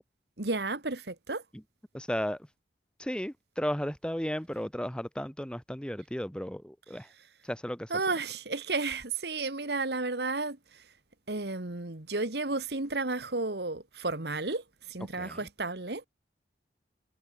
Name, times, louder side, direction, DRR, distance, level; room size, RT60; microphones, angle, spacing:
voice 1, 0.4-1.4 7.9-10.6 11.3-14.6 14.9-16.0, right 3 dB, 65° right, 1.9 m, -32 dB
voice 2, 1.9-2.4 3.0-7.1 7.5-7.9 15.1-15.4, equal, 5° left, 1.5 m, -34 dB
head